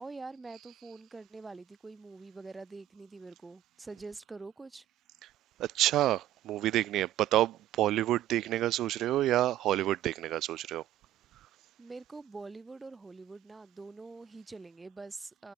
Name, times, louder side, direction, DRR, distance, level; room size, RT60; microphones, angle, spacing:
voice 1, 0.0-4.8 11.8-15.5, right 3 dB, 25° right, 1.3 m, -45 dB
voice 2, 5.6-10.8, right 14 dB, 80° right, 0.5 m, -28 dB
cardioid pair, 85°, 0 cm